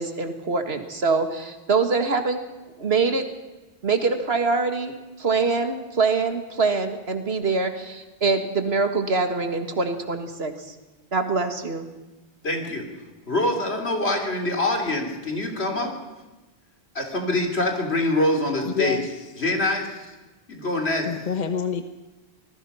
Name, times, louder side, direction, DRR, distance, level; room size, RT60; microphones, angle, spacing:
voice 1, 0.0-2.4 2.8-3.2 3.8-10.5 11.1-11.9, right 4 dB, 70° right, 7 dB, 2.1 m, -24 dB
voice 2, 12.4-12.9 13.3-15.9 17.0-19.0 19.4-20.0 20.5-21.0, left 1 dB, 80° left, 3 dB, 3.6 m, -24 dB
voice 3, 18.7-19.2 21.1-21.8, left 6 dB, 45° left, 9 dB, 1.0 m, -27 dB
26.0 x 19.5 x 5.7 m, 1.1 s
omnidirectional pair, 1.1 m